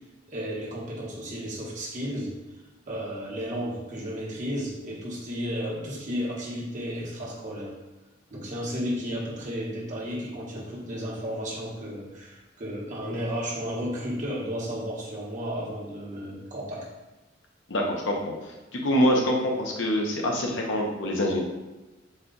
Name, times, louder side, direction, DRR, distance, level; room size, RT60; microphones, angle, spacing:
voice 1, 0.3-2.4 2.9-7.7 8.3-16.9, equal, 40° right, -5 dB, 1.1 m, -33 dB
voice 2, 17.7-18.1 18.4-21.4, equal, 75° left, 0 dB, 0.8 m, -25 dB
4.3 x 2.3 x 3.8 m, 1.1 s
head